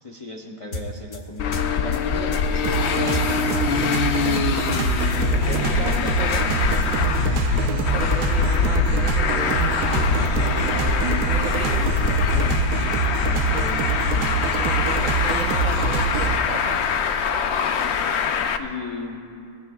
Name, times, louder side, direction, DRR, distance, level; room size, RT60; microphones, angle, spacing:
voice 1, 0.0-3.4 18.6-19.2, left 3 dB, 30° left, 1 dB, 0.7 m, -35 dB
sound 1, 0.7-3.6 3.9-6.8, left 2 dB, 45° left, 1.3 m, -33 dB
Traffic noise roadway noise, 1.4-18.6, left 6 dB, 65° left, 0.7 m, -23 dB
sound 2, 2.6-16.4, right 6 dB, 80° right, 1.3 m, -25 dB
voice 2, 5.4-13.9 14.4-16.9 17.3-17.6, right 5 dB, 60° right, 4 dB, 1.0 m, -35 dB
21.5 x 19.5 x 2.3 m, 2.5 s
omnidirectional pair, 1.7 m